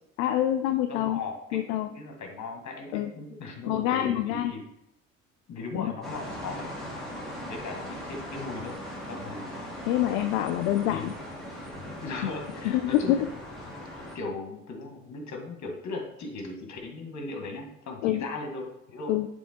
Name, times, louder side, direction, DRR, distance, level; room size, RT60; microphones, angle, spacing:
voice 1, 0.2-1.2 1.5-1.9 2.9-3.1 3.7-4.5 5.7-5.9 9.8-11.1 12.6-13.3 18.0-18.2 19.1-19.3, left 12 dB, 70° left, 8 dB, 0.5 m, -26 dB
voice 2, 0.9-4.6 5.5-6.8 7.5-8.8 9.1-9.6 9.9-10.2 10.9-11.0 12.0-13.2 14.1-19.2, left 3 dB, 45° left, 2 dB, 1.8 m, -38 dB
sound 1, 6.0-14.2, equal, ahead, 2.3 m, -39 dB
6.9 x 3.6 x 4.4 m, 0.79 s
hypercardioid pair, 55°, 41 cm